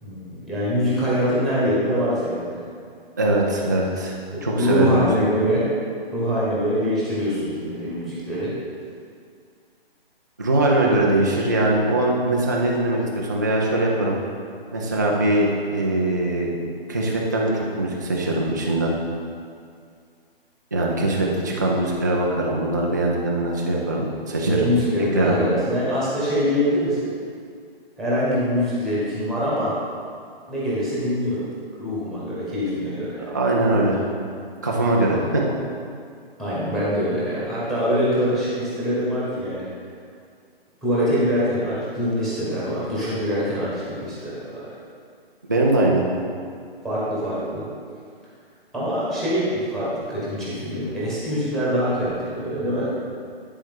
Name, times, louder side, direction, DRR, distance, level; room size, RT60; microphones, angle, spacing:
voice 1, 0.0-2.6 4.3-5.6 6.1-8.5 24.4-27.1 28.0-29.7 30.5-31.5 31.8-33.2 36.4-39.7 40.8-44.4 46.8-47.6 48.7-52.9, equal, ahead, -9 dB, 1.3 m, -24 dB
voice 2, 3.2-4.1 4.4-5.0 10.4-14.2 14.7-16.5 16.9-18.9 20.7-24.7 25.1-25.4 33.2-34.1 34.6-35.4 45.5-46.0, right 1 dB, 20° right, -3 dB, 0.3 m, -21 dB
10.0 x 4.4 x 3.6 m, 2.2 s
figure-of-eight pair, 145°, 31 cm